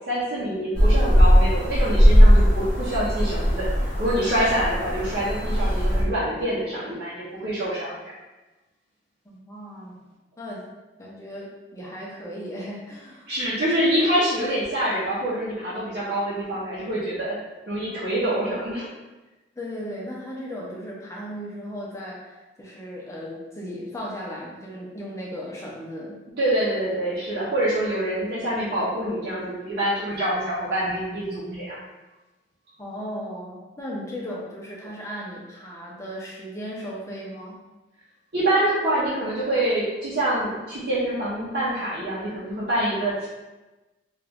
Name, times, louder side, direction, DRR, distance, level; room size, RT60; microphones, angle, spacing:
voice 1, 0.0-3.7 4.0-7.9 13.3-17.4 17.7-18.9 26.4-31.8 38.3-43.3, right 1 dB, 55° right, -11 dB, 0.7 m, -25 dB
sound 1, 0.7-6.0, equal, 50° left, 0.9 m, -18 dB
voice 2, 9.2-10.0 10.4-10.7 11.0-13.4 19.6-26.2 32.8-37.6, equal, 15° left, -4 dB, 0.6 m, -36 dB
3.0 x 2.4 x 3.5 m, 1.1 s
head